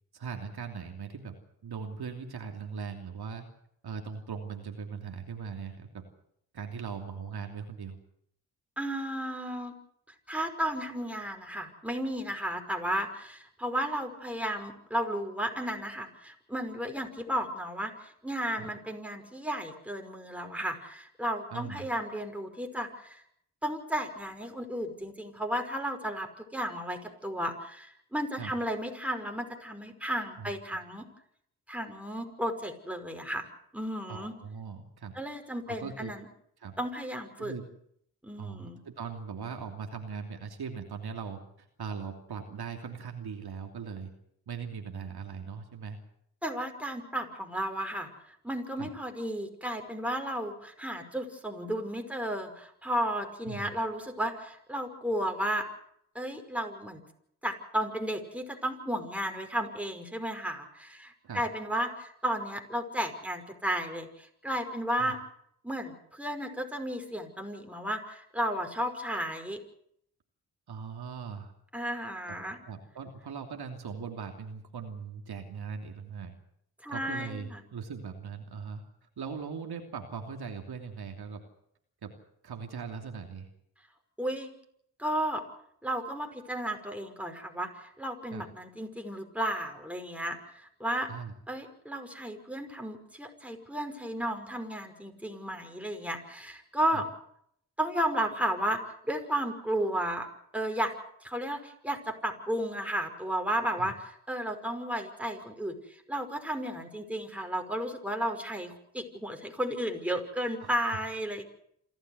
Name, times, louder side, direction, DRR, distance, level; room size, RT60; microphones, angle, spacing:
voice 1, 0.1-1.3 1.6-3.4 3.8-6.0 6.5-8.0 18.6-18.7 21.5-21.9 28.4-28.5 30.4-30.5 34.1-35.1 35.7-36.1 36.6-36.7 37.4-37.7 38.4-44.1 44.5-46.0 48.8-48.9 53.4-53.7 61.2-61.4 65.0-65.1 70.7-71.5 72.3-72.4 72.7-76.3 76.9-81.4 82.0-82.1 82.4-83.5 88.3-88.4 91.1-91.3 96.9-97.0 103.8-103.9 110.6-111.0, right 6 dB, 60° right, 4 dB, 3.0 m, -40 dB
voice 2, 8.8-9.7 10.3-23.2 23.6-31.1 31.7-33.5 33.7-34.3 35.2-36.3 36.8-37.5 38.2-38.8 46.4-55.7 56.1-57.0 57.4-65.2 65.6-69.6 71.7-72.6 76.8-77.6 84.2-84.5 85.0-85.4 85.8-91.1 91.5-97.0 97.8-100.3 100.5-100.9 101.2-111.4, equal, 5° right, 4 dB, 5.5 m, -33 dB
27.5 x 13.0 x 8.1 m, 0.71 s
hypercardioid pair, 45°, 43 cm